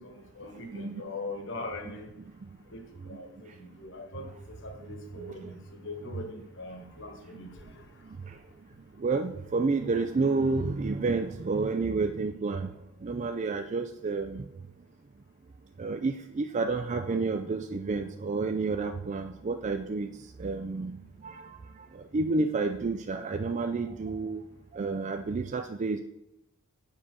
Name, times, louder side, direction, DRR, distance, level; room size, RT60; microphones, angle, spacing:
voice 1, 0.0-2.1 2.7-2.8 3.1-4.3 4.6-7.8, left 2 dB, 60° left, 4 dB, 1.5 m, -41 dB
voice 2, 9.0-12.7 13.0-14.5 15.8-20.1 20.4-20.9 21.2-21.6 22.1-24.4 24.7-26.0, right 3 dB, 35° right, 7 dB, 0.4 m, -30 dB
7.4 x 5.6 x 6.2 m, 0.88 s
head